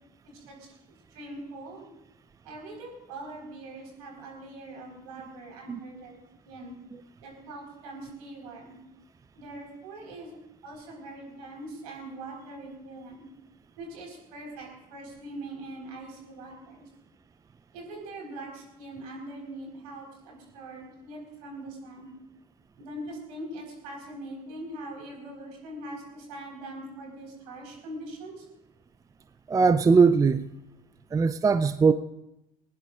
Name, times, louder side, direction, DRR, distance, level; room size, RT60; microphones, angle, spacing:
voice 1, 1.1-1.9 2.4-6.2 6.4-6.7 7.2-8.8 9.3-10.4 10.6-13.2 13.8-16.9 17.7-22.1 22.8-28.4, right 1 dB, 70° right, 0 dB, 4.4 m, -42 dB
voice 2, 29.5-30.4 31.1-31.9, right 5 dB, 15° right, 11 dB, 0.5 m, -20 dB
19.0 x 17.5 x 2.5 m, 0.89 s
figure-of-eight pair, 65°, 21 cm